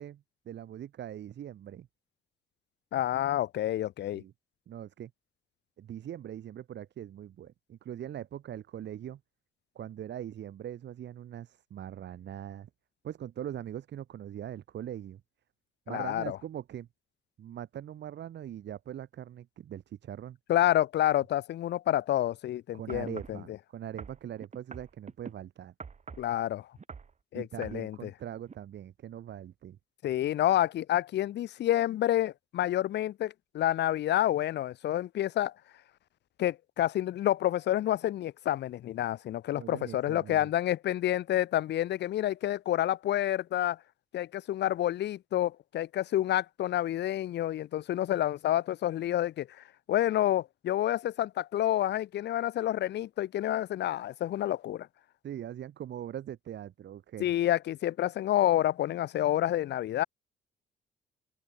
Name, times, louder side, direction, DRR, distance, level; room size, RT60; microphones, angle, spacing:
voice 1, 0.0-1.9 4.1-4.3 4.7-5.1 5.8-9.2 9.7-12.7 13.0-15.2 15.9-16.9 17.4-20.4 22.7-25.7 27.3-29.8 39.5-40.5 55.2-57.3, right 10 dB, 65° right, 1.3 m, -41 dB
voice 2, 2.9-4.2 15.9-16.4 20.5-23.6 26.2-26.7 27.3-28.1 30.0-35.5 36.4-43.8 44.1-54.9 57.2-60.0, left 12 dB, 65° left, 0.5 m, -29 dB
sound 1, 22.9-23.4 24.0-25.3 25.8-26.3 26.8-27.1 27.6-27.8 28.5-28.6, right 5 dB, 35° right, 4.1 m, -44 dB
open air
cardioid pair, 115°, 19 cm